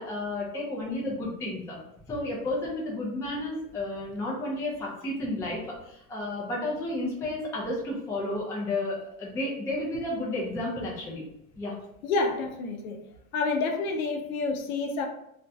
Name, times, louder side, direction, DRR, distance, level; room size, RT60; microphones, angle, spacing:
voice 1, 0.0-1.8 2.1-11.2 11.6-11.7, left 1 dB, 10° left, -4 dB, 0.3 m, -32 dB
voice 2, 12.0-13.0 13.3-15.1, left 3 dB, 90° left, 4 dB, 0.6 m, -28 dB
2.4 x 2.1 x 2.6 m, 0.78 s
supercardioid pair, 115°, 41 cm